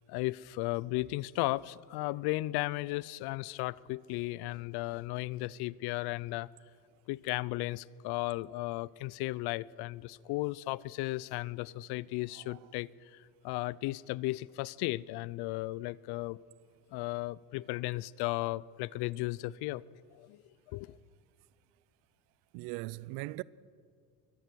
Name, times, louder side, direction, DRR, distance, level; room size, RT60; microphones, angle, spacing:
voice 1, 0.1-6.5 7.1-16.4 16.9-19.8 20.1-20.4 20.7-21.0, left 19 dB, 70° left, 0.6 m, -35 dB
voice 2, 22.5-23.4, right 21 dB, 75° right, 0.6 m, -39 dB
23.0 x 19.5 x 6.3 m
supercardioid pair, 90°, 40 cm